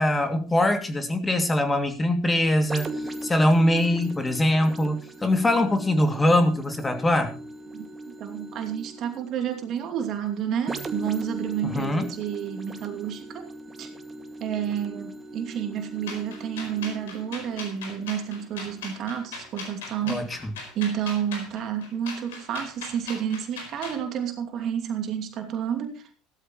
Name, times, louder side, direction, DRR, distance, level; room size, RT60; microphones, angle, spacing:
voice 1, 0.0-2.9 3.2-7.3 11.6-12.1 20.1-20.5, left 1 dB, 20° left, 6 dB, 2.7 m, -22 dB
sound 1, 2.7-20.2 20.8-20.9, right 1 dB, 25° right, 2.2 m, -39 dB
voice 2, 7.7-13.5 13.8-13.9 14.4-20.4 20.7-26.1, right 9 dB, 50° right, 4 dB, 2.7 m, -30 dB
sound 2, 16.1-24.0, left 4 dB, 80° left, 4.5 m, -39 dB
16.0 x 13.0 x 3.2 m, 0.33 s
hypercardioid pair, 70°, 0 cm